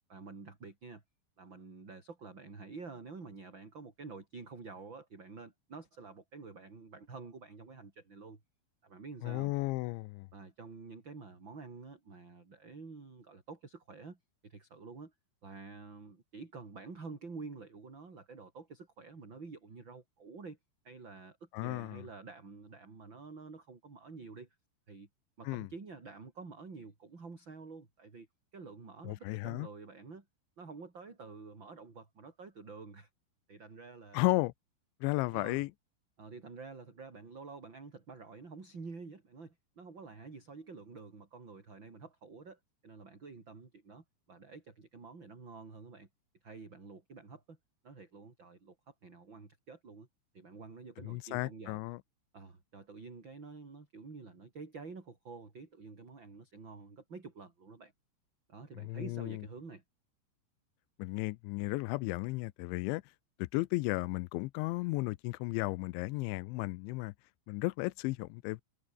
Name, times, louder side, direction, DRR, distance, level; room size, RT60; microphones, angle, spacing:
voice 1, 0.1-1.0 1.4-8.4 8.8-9.5 10.3-15.1 15.4-20.6 20.8-24.5 24.9-25.1 25.4-28.3 28.5-30.3 30.6-33.1 33.5-34.2 35.3-35.6 36.2-46.1 46.4-47.6 47.8-50.1 50.3-51.8 52.3-57.9 58.5-59.8, right 4 dB, 25° right, 4.3 m, -49 dB
voice 2, 9.2-10.3 21.5-22.0 25.4-25.7 29.0-29.7 34.1-34.5 35.0-35.7 51.0-52.0 58.8-59.4 61.0-63.1 63.4-67.1 67.5-68.6, left 22 dB, 85° left, 3.0 m, -34 dB
omnidirectional pair, 5.2 m